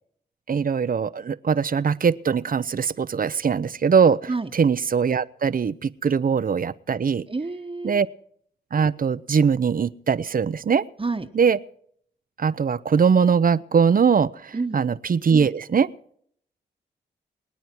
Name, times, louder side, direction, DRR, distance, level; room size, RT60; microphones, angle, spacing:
voice 1, 0.5-7.2 7.8-8.1 8.7-10.8 11.3-11.6 12.4-15.9, right 6 dB, 45° right, 17 dB, 0.7 m, -21 dB
voice 2, 7.3-8.0 11.0-11.3 14.5-14.8, right 3 dB, 25° right, 5 dB, 1.2 m, -29 dB
27.0 x 9.3 x 4.6 m, 0.64 s
supercardioid pair, 45°, 20 cm